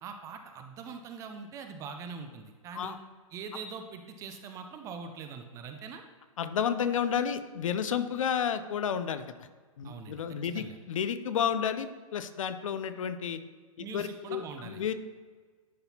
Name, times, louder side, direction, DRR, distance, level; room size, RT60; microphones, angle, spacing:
voice 1, 0.0-3.0 3.3-6.0 9.8-10.8 13.8-14.8, right 5 dB, 15° right, 6 dB, 0.4 m, -43 dB
voice 2, 6.4-9.5 9.8-13.4 13.8-14.9, left 8 dB, 65° left, 11 dB, 0.5 m, -31 dB
10.5 x 4.0 x 2.9 m, 1.5 s
hypercardioid pair, 125°, 18 cm